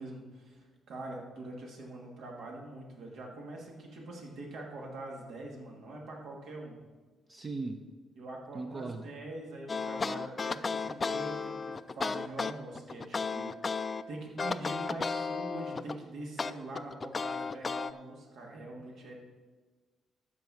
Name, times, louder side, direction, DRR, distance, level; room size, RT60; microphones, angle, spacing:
voice 1, 0.0-6.8 8.2-13.7 14.1-19.2, right 2 dB, 75° right, -1 dB, 2.4 m, -44 dB
voice 2, 7.3-7.8 8.5-9.1, right 3 dB, 30° right, 4 dB, 0.7 m, -38 dB
sound 1, 9.7-14.0 14.4-16.0 16.4-17.9, left 4 dB, 30° left, 0.4 m, -34 dB
12.0 x 4.7 x 7.7 m, 1.3 s
cardioid pair, 110°, 0 cm